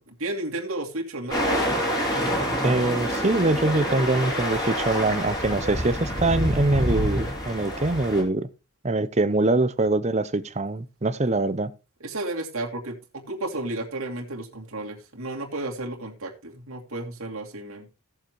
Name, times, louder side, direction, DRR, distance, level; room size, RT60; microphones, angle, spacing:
voice 1, 0.0-1.6 12.0-17.9, right 2 dB, 75° right, 2.6 m, -33 dB
sound 1, 1.3-8.2, equal, 20° left, 3.4 m, -27 dB
voice 2, 2.6-8.5 8.8-11.7, right 2 dB, 30° right, 0.6 m, -23 dB
16.5 x 7.2 x 3.0 m
head